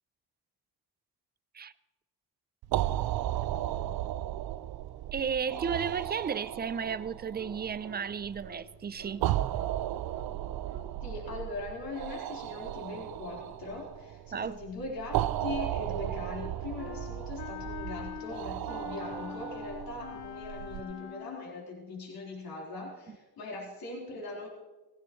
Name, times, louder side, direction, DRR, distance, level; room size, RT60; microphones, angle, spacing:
sound 1, 2.6-20.8, right 13 dB, 70° right, 0.5 m, -35 dB
voice 1, 5.1-9.3 14.3-14.6, right 6 dB, 25° right, 0.5 m, -33 dB
sound 2, 6.3-6.5 6.8-7.0 7.3-7.5 7.8-8.0 8.4-8.6 9.0-9.1 9.5-9.7 10.1-10.3 10.7-10.8 11.2-11.4, right 4 dB, 90° right, 2.4 m, -50 dB
voice 2, 11.0-24.5, left 3 dB, 65° left, 4.3 m, -41 dB
Wind instrument woodwind instrument, 16.8-21.6, left 8 dB, 90° left, 1.1 m, -43 dB
17.0 x 16.5 x 3.2 m
cardioid pair, 85°, 38 cm